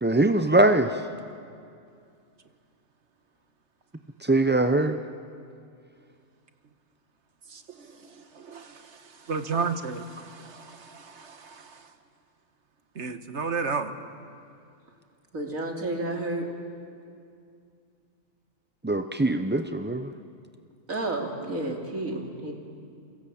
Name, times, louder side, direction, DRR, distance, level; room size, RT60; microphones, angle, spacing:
voice 1, 0.0-1.0 4.2-5.0 18.8-20.1, right 2 dB, 15° right, 8 dB, 0.3 m, -22 dB
voice 2, 7.5-11.9 12.9-13.9, right 5 dB, 60° right, 9 dB, 1.6 m, -33 dB
voice 3, 15.3-16.5 20.9-22.6, right 2 dB, 90° right, 1 dB, 3.4 m, -31 dB
29.0 x 23.5 x 8.6 m, 2.4 s
omnidirectional pair, 1.4 m